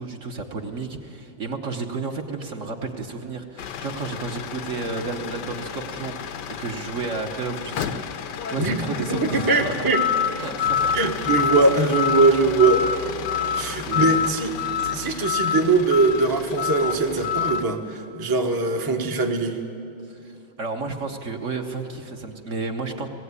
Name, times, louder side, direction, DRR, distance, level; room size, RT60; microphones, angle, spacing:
voice 1, 0.0-9.8 10.4-11.0 13.8-14.4 20.1-23.1, right 4 dB, 45° right, 3 dB, 1.2 m, -32 dB
sound 1, 3.6-17.6, left 7 dB, 65° left, 1.3 m, -28 dB
voice 2, 8.6-10.0 10.9-12.9 13.5-14.5 14.8-19.6, right 3 dB, 15° right, 2 dB, 0.8 m, -21 dB
18.5 x 16.0 x 9.6 m, 2.6 s
omnidirectional pair, 2.1 m